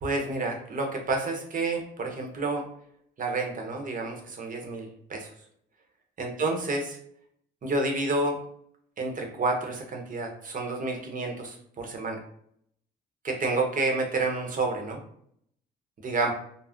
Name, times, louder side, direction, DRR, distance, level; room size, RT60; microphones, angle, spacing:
voice 1, 0.0-2.6 3.2-5.3 6.2-7.0 7.6-8.4 9.0-12.2 13.2-15.0 16.0-16.3, right 3 dB, 45° right, 2 dB, 0.8 m, -29 dB
2.5 x 2.0 x 3.4 m, 0.66 s
cardioid pair, 90°, 20 cm